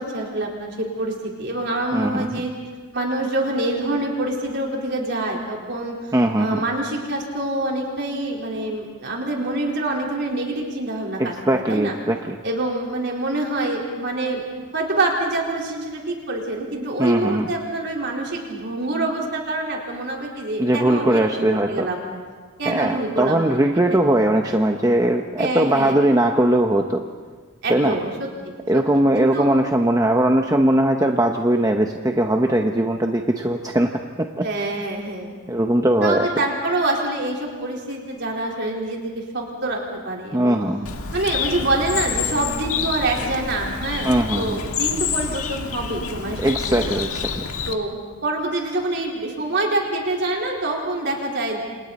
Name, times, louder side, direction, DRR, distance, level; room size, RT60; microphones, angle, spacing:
voice 1, 0.0-2.5 2.9-12.0 12.4-14.4 14.7-22.0 22.6-24.0 25.4-26.0 27.6-28.8 29.1-29.5 34.4-35.3 36.0-39.8 40.0-40.6 41.1-44.1 44.4-46.8 47.7-51.6, right 2 dB, 50° right, -1 dB, 4.3 m, -26 dB
voice 2, 1.9-2.4 6.1-6.6 11.2-12.4 17.0-17.5 20.6-21.9 22.6-27.0 27.7-28.0 28.7-33.9 34.2-34.5 35.5-36.3 40.3-40.9 44.0-44.6 46.4-47.4, right 1 dB, 15° right, 3 dB, 0.8 m, -20 dB
Bird, 40.8-47.7, left 6 dB, 80° left, 1.7 m, -28 dB
29.0 x 27.0 x 4.2 m, 1.5 s
head